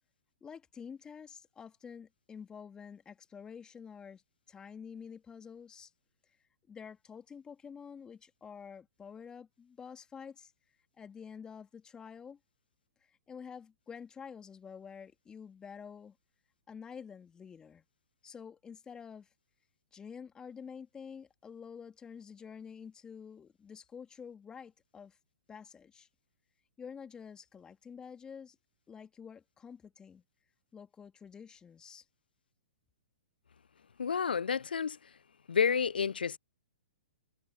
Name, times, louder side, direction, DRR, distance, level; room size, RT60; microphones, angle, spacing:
voice 1, 0.4-4.2 4.5-5.9 6.7-10.5 11.0-12.4 13.0-16.1 16.7-17.8 18.2-19.3 19.9-25.2 25.5-26.1 26.8-28.6 28.9-30.2 30.7-32.0, left 6 dB, 15° left, 3.0 m, -48 dB
voice 2, 34.0-35.0 35.5-36.4, left 6 dB, 85° left, 0.3 m, -30 dB
hypercardioid pair, 120°, 5 cm